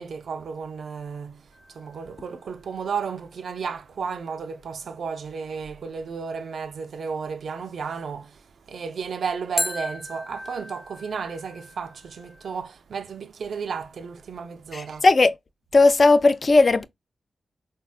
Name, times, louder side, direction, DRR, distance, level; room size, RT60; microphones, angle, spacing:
voice 1, 0.0-1.4 1.7-8.4 8.7-15.0, right 5 dB, 80° right, 0.3 m, -33 dB
sound 1, 1.5-2.6 9.6-12.5, equal, 5° left, 0.5 m, -35 dB
voice 2, 14.7-15.3 15.7-16.8, left 3 dB, 55° left, 0.3 m, -17 dB
3.5 x 2.1 x 2.3 m
cardioid pair, 40°, 0 cm